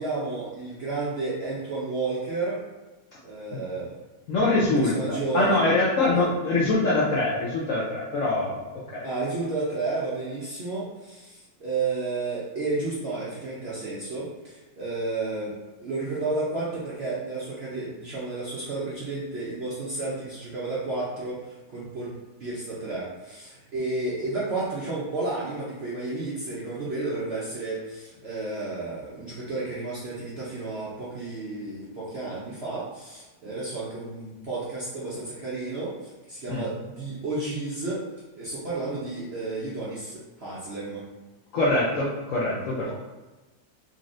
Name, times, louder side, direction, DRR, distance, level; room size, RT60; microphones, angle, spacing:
voice 1, 0.0-2.6 3.2-3.9 4.7-5.6 6.1-6.3 9.0-15.6 15.8-22.1 22.4-38.0 38.3-41.0 42.8-42.9, right 3 dB, 55° right, -8 dB, 0.7 m, -32 dB
voice 2, 4.3-8.7 8.9-9.1 36.5-36.7 41.5-42.9, left 2 dB, 65° left, -5 dB, 0.8 m, -24 dB
4.0 x 3.1 x 2.5 m, 1.2 s
omnidirectional pair, 2.0 m